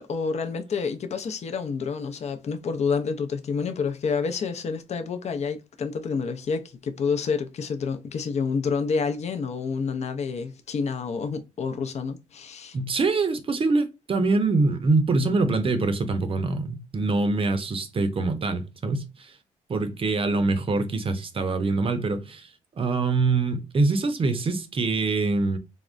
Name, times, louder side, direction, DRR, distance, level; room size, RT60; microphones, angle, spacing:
voice 1, 0.0-12.8, left 5 dB, 55° left, 0.5 m, -28 dB
voice 2, 12.7-19.3 19.7-22.5 22.8-25.6, right 3 dB, 40° right, 0.6 m, -24 dB
3.6 x 2.1 x 2.4 m
cardioid pair, 80°, 14 cm